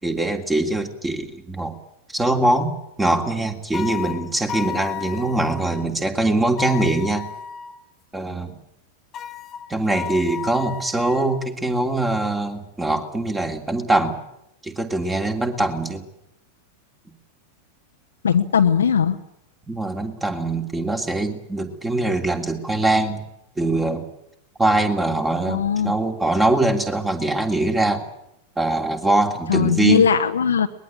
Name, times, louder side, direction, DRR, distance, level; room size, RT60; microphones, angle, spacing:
voice 1, 0.0-1.8 2.1-2.7 3.0-7.2 8.1-8.6 9.7-14.2 14.6-16.0 19.7-23.2 23.6-24.1 24.6-28.1 28.6-30.1, right 2 dB, 10° right, 5 dB, 3.1 m, -22 dB
sound 1, 3.7-5.9 6.6-7.8 9.1-11.3, left 8 dB, 30° left, 1.1 m, -33 dB
voice 2, 18.2-19.2 25.5-25.9 29.5-30.7, left 7 dB, 70° left, 5 dB, 1.2 m, -18 dB
23.0 x 21.0 x 8.8 m, 0.80 s
figure-of-eight pair, 90°, 0 cm